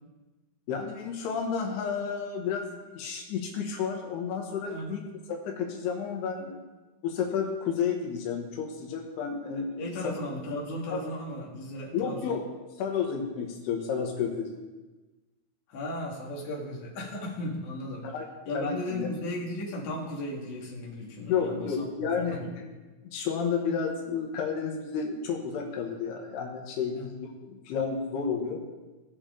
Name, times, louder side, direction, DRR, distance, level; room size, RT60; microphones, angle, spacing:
voice 1, 0.7-6.6 7.0-10.2 10.9-11.0 11.9-12.4 12.8-14.5 18.0-18.3 18.5-19.1 21.2-22.7 23.1-28.6, left 6 dB, 90° left, 2 dB, 3.3 m, -31 dB
voice 2, 4.7-5.0 9.8-12.4 15.7-18.1 18.5-22.4 26.9-27.1, left 1 dB, 55° left, -4 dB, 3.2 m, -36 dB
18.5 x 6.5 x 3.8 m, 1.2 s
omnidirectional pair, 4.5 m